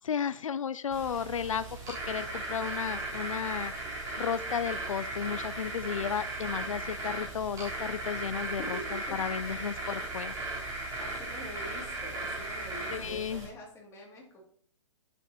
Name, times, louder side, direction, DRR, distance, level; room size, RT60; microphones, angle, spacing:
voice 1, 0.0-3.7 4.2-8.6 9.2-9.7 10.1-10.3 12.9-13.5, left 7 dB, 85° left, 15 dB, 0.4 m, -33 dB
sound 1, 0.9-13.5, right 2 dB, 20° right, 3.6 m, -37 dB
voice 2, 8.6-9.8 11.0-14.4, left 1 dB, 15° left, -2 dB, 2.4 m, -45 dB
10.5 x 6.9 x 2.8 m, 0.62 s
hypercardioid pair, 135°, 16 cm